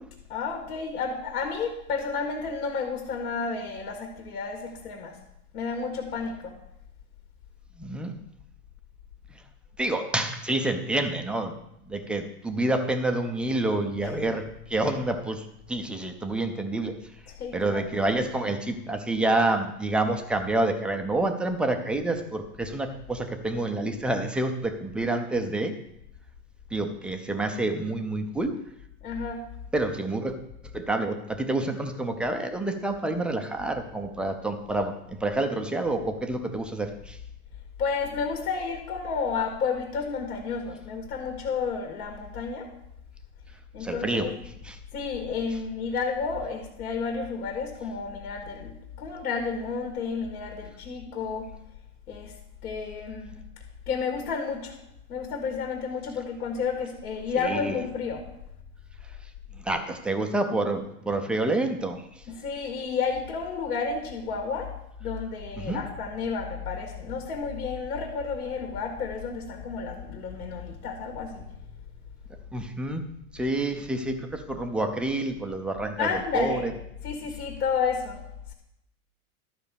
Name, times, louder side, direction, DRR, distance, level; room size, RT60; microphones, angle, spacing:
voice 1, 0.3-5.1 5.5-6.5 14.0-14.1 17.4-17.9 29.0-29.4 37.8-42.7 43.7-44.3 44.9-51.5 52.1-52.3 52.6-53.3 53.9-54.8 55.1-58.2 62.3-64.7 65.0-71.4 76.0-76.7 77.0-78.2, left 5 dB, 80° left, 2 dB, 2.1 m, -31 dB
voice 2, 7.8-8.1 9.8-11.6 11.9-16.9 17.5-25.7 26.7-28.6 29.7-30.3 30.6-37.2 43.8-44.3 44.6-44.8 57.4-57.8 59.6-62.0 65.6-65.8 72.5-73.0 73.3-76.7, right 2 dB, 5° right, 5 dB, 0.3 m, -28 dB
12.5 x 5.1 x 6.9 m, 0.82 s
hypercardioid pair, 125°, 44 cm